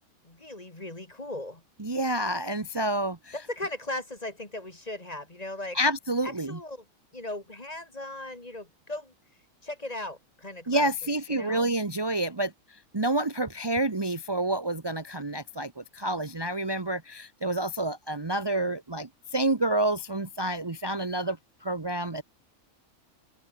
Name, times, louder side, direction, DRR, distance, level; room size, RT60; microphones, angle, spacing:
voice 1, 0.2-1.6 3.3-5.8 6.2-6.8 7.1-9.1 9.6-10.9 11.3-11.7, left 2 dB, 30° left, 2.8 m, -38 dB
voice 2, 1.8-3.3 5.7-6.6 10.7-12.5 12.9-21.4 21.6-22.2, right 1 dB, 20° right, 1.1 m, -28 dB
open air
omnidirectional pair, 1.4 m